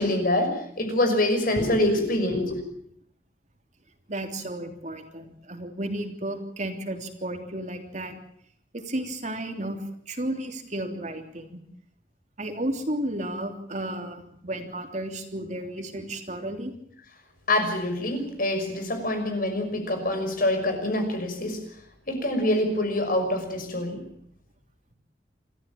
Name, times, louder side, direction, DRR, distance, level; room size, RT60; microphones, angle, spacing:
voice 1, 0.0-2.6 17.5-21.6 22.1-24.0, left 1 dB, 50° left, 6 dB, 5.9 m, -25 dB
voice 2, 4.1-8.2 8.7-11.6 12.4-16.7, right 1 dB, 40° right, 5 dB, 3.3 m, -33 dB
27.0 x 14.5 x 8.7 m, 0.67 s
head